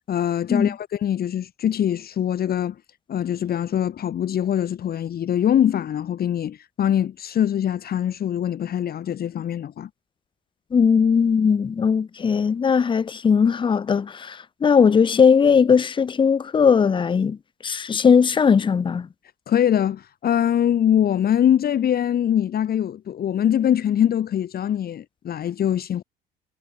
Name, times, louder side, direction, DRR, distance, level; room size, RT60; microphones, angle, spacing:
voice 1, 0.1-2.8 3.1-9.9 19.5-26.0, left 10 dB, 50° left, 1.8 m, -23 dB
voice 2, 10.7-17.4 17.6-19.1, left 6 dB, 25° left, 0.6 m, -18 dB
supercardioid pair, 80°, 20 cm